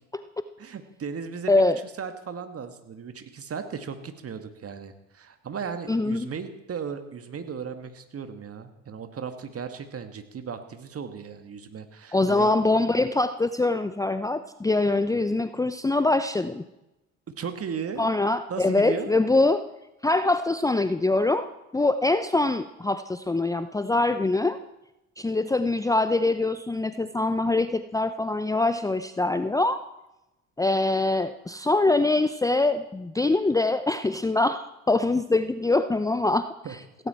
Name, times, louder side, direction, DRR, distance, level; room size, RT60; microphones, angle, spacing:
voice 1, 0.6-1.7 2.0-12.6 17.3-19.1 36.6-36.8, right 6 dB, 40° right, 7 dB, 2.1 m, -36 dB
voice 2, 5.9-6.3 12.1-16.6 18.0-19.6 20.0-24.6 25.2-29.8 30.6-36.5, left 2 dB, 10° left, 11 dB, 0.6 m, -24 dB
17.0 x 16.5 x 4.5 m, 0.94 s
hypercardioid pair, 60°, 37 cm